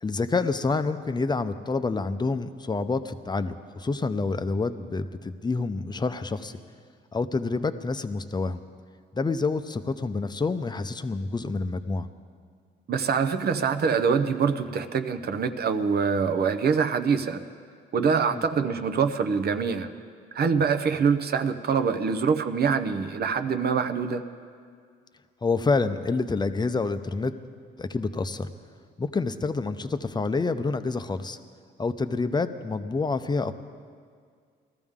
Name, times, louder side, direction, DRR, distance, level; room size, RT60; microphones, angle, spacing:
voice 1, 0.0-6.6 7.1-8.6 9.1-12.1 18.3-18.4 25.4-27.3 27.8-28.5 29.0-31.4 31.8-33.5, left 3 dB, 20° left, 10 dB, 0.6 m, -28 dB
voice 2, 12.9-17.4 17.9-19.9 20.3-24.2, right 6 dB, 55° right, 9 dB, 0.8 m, -24 dB
20.0 x 14.0 x 3.7 m, 2.1 s
cardioid pair, 90°, 20 cm